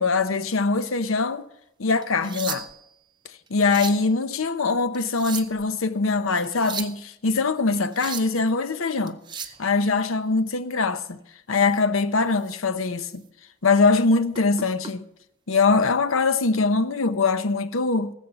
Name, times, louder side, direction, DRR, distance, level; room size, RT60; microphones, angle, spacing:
voice 1, 0.0-1.4 1.8-2.7 3.5-9.2 9.6-11.2 11.5-13.2 13.6-15.1 15.5-18.1, left 4 dB, 85° left, 0.8 m, -22 dB
sound 1, 2.0-2.9 3.5-4.1 4.9-5.7 6.4-7.0 7.7-8.4 9.1-9.6 11.6-11.8 12.3-12.5 13.0-13.1 14.3-14.9 16.0-16.2, right 7 dB, 20° right, 0.6 m, -36 dB
18.0 x 7.3 x 5.7 m
head